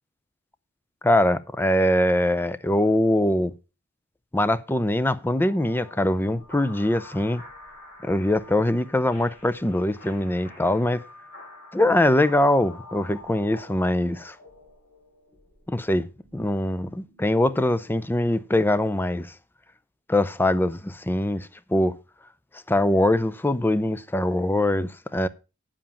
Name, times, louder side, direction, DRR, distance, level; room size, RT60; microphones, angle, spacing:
voice 1, 1.0-3.5 4.3-7.4 8.0-11.0 11.7-14.4 15.7-19.3 20.1-22.0 22.7-25.3, left 1 dB, 10° left, 0.5 m, -23 dB
sound 1, 5.3-18.4, left 2 dB, 45° left, 6.3 m, -48 dB
8.9 x 7.5 x 5.7 m
head